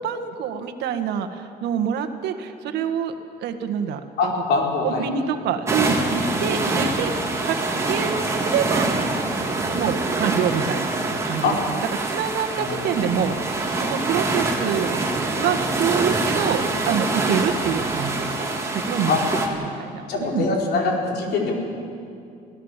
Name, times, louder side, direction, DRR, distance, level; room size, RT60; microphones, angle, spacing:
voice 1, 0.0-3.1 3.4-4.3 4.8-7.6 7.9-8.9 9.6-10.9 11.2-11.8 12.1-15.0 15.4-18.5 18.7-19.2 19.6-20.5, right 8 dB, 80° right, 7 dB, 1.7 m, -26 dB
voice 2, 4.2-5.1 11.4-11.6 12.6-13.1 19.1-19.2 20.1-21.6, left 4 dB, 75° left, -1 dB, 5.0 m, -23 dB
sound 1, 5.7-19.5, right 2 dB, 15° right, 3.5 m, -25 dB
25.5 x 17.0 x 7.5 m, 2.5 s
cardioid pair, 110°, 17 cm